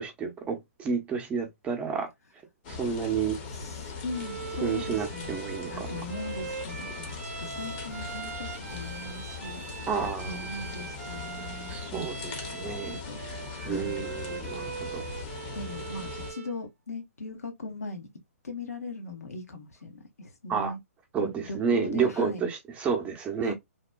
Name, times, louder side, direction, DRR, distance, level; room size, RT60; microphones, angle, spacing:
voice 1, 0.0-2.1 2.7-3.4 4.6-6.0 9.9-10.5 11.7-13.4 13.6-15.0 20.5-20.7 21.1-23.5, right 6 dB, 15° right, 0.7 m, -30 dB
sound 1, 2.6-16.3, left 5 dB, 40° left, 0.9 m, -40 dB
voice 2, 3.5-5.4 5.7-9.6 10.3-11.7 12.0-13.2 13.5-14.1 15.5-18.1 18.4-20.8 21.2-22.4 23.4-23.5, left 2 dB, 80° left, 1.0 m, -39 dB
Bowed string instrument, 4.1-16.6, right 6 dB, 75° right, 0.5 m, -41 dB
2.9 x 2.1 x 2.3 m
hypercardioid pair, 135°, 8 cm